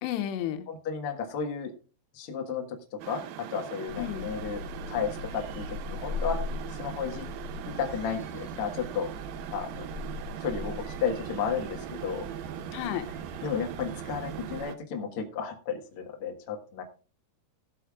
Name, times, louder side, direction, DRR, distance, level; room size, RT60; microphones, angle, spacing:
voice 1, 0.0-0.7 4.0-4.3 12.7-13.1, left 11 dB, 90° left, 3.0 m, -32 dB
voice 2, 0.7-1.7 2.1-3.2 3.5-4.6 4.9-6.4 6.7-7.3 7.7-9.1 9.5-9.9 10.4-12.2 13.4-16.8, left 6 dB, 60° left, 1.5 m, -33 dB
sound 1, 3.0-14.8, right 10 dB, 80° right, 2.2 m, -40 dB
sound 2, 3.9-14.6, left 4 dB, 30° right, 4.4 m, -40 dB
17.5 x 8.4 x 2.4 m
omnidirectional pair, 4.8 m